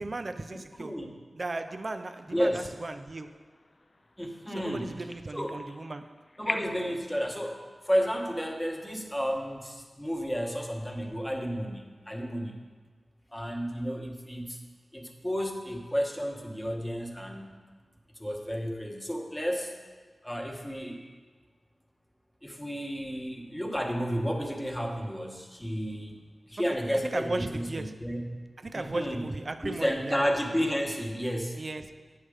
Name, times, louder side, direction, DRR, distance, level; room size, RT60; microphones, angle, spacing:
voice 1, 0.0-1.0 1.4-3.4 4.5-6.2 27.0-28.1 28.6-30.2 31.6-32.1, right 2 dB, 45° right, 0.4 m, -36 dB
voice 2, 0.8-1.2 2.3-2.7 4.2-4.9 5.3-5.6 6.4-12.6 13.3-14.6 14.9-17.5 18.2-19.7 20.2-21.0 22.4-26.2 26.5-28.3 28.7-29.3 29.6-31.6, equal, 10° left, 1.0 m, -32 dB
sound 1, 1.7-7.0, left 2 dB, 40° left, 0.4 m, -43 dB
8.8 x 6.6 x 4.9 m
wide cardioid pair, 100°, 0 cm